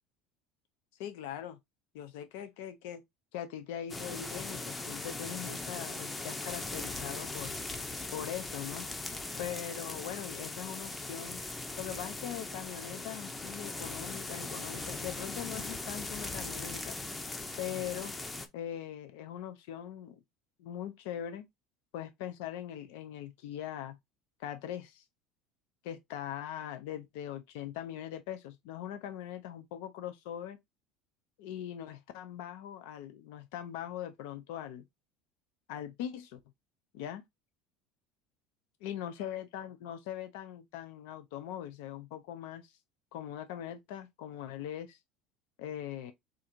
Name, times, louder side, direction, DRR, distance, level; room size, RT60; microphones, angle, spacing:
voice 1, 1.0-1.6 1.9-3.0 3.3-7.6 8.1-8.9 9.4-11.4 11.8-17.0 17.6-18.1 18.5-20.2 20.6-21.5 21.9-24.0 24.4-25.0 25.8-30.6 31.4-34.9 35.7-36.4 36.9-37.2 38.8-42.7 43.1-45.0 45.6-46.1, left 10 dB, 80° left, 0.6 m, -41 dB
sound 1, 3.9-18.5, left 3 dB, 15° left, 0.6 m, -39 dB
3.8 x 2.6 x 4.3 m
cardioid pair, 135°, 0 cm